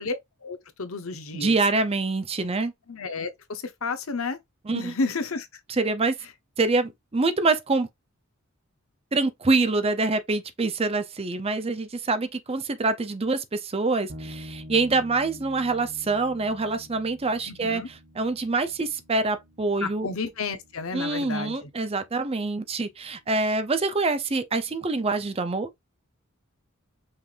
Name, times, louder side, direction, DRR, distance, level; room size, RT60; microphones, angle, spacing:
voice 1, 0.0-1.6 2.9-4.4 4.7-5.5 17.4-17.9 19.8-21.7, left 4 dB, 75° left, 0.9 m, -31 dB
voice 2, 1.3-2.7 4.7-4.9 5.7-6.1 6.6-7.9 9.1-17.8 18.2-20.1 20.9-25.7, right 3 dB, 30° right, 0.6 m, -25 dB
sound 1, 14.1-23.6, equal, 50° right, 1.2 m, -48 dB
5.5 x 3.4 x 2.5 m
head